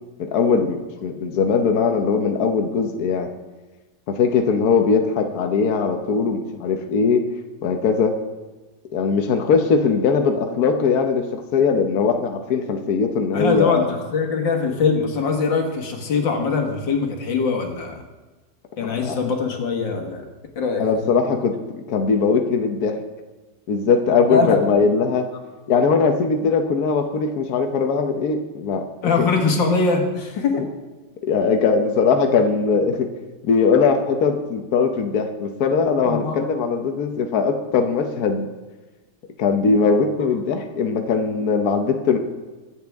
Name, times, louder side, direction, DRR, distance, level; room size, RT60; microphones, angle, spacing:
voice 1, 0.2-3.3 4.1-7.3 7.6-8.2 8.9-13.9 18.8-19.2 20.8-23.0 23.7-25.3 25.7-28.9 31.2-33.1 33.4-38.5 39.4-42.2, left 5 dB, 60° left, 5 dB, 1.4 m, -20 dB
voice 2, 13.3-18.0 18.8-20.2 20.6-21.1 24.3-24.6 29.0-30.6 36.1-36.4, left 4 dB, 85° left, 2 dB, 2.3 m, -22 dB
22.5 x 8.0 x 3.5 m, 1.2 s
omnidirectional pair, 2.0 m